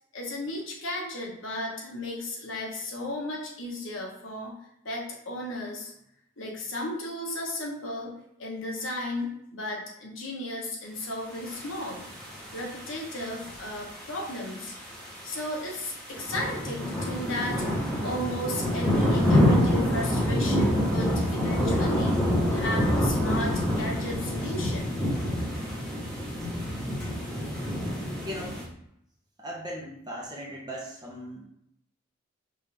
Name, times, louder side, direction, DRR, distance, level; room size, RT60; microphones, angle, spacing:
voice 1, 0.1-4.6 4.8-5.9 6.4-8.1 8.4-12.0 12.5-14.7 15.2-17.7 18.0-22.2 22.5-25.0, left 1 dB, 70° left, -2 dB, 1.2 m, -34 dB
sound 1, 11.5-28.6, equal, 5° left, 1.0 m, -27 dB
voice 2, 28.2-28.6 29.4-31.4, equal, 20° right, -3 dB, 0.8 m, -38 dB
5.2 x 2.6 x 3.4 m, 0.75 s
head